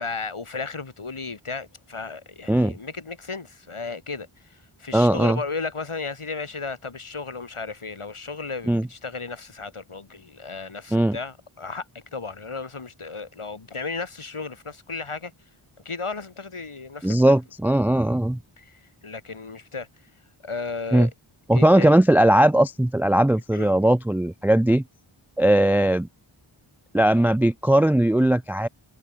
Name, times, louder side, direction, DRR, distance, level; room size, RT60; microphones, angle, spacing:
voice 1, 0.0-15.3 15.8-17.4 18.6-19.9 20.4-21.1 21.5-21.9 23.5-23.7, left 4 dB, 80° left, 4.5 m, -34 dB
voice 2, 4.9-5.4 8.7-8.9 10.9-11.2 17.0-18.4 20.9-21.1 21.5-24.8 25.4-26.1 26.9-28.7, right 1 dB, 5° right, 0.3 m, -19 dB
wide cardioid pair, 40°, 49 cm